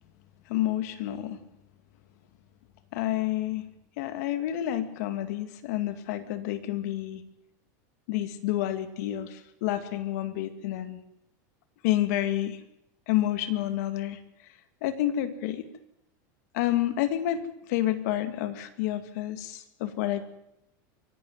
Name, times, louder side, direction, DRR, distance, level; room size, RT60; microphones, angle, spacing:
voice 1, 0.5-1.4 2.9-3.6 4.0-7.2 8.1-11.0 11.8-12.6 13.1-14.2 14.8-15.7 16.5-17.4 17.7-20.2, left 13 dB, 60° left, 9 dB, 2.3 m, -29 dB
24.0 x 12.0 x 9.4 m, 0.81 s
supercardioid pair, 165°, 10 cm